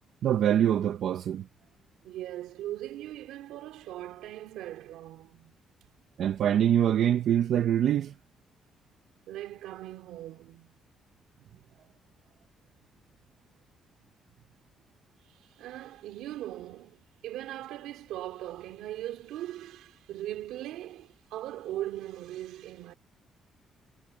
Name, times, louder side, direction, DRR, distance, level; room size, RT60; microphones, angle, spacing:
voice 1, 0.2-1.4 6.2-8.1, right 10 dB, 70° right, 1.0 m, -24 dB
voice 2, 2.0-5.6 9.3-10.7 15.4-22.9, right 13 dB, 90° right, 3.3 m, -40 dB
cardioid pair, 90°, 0 cm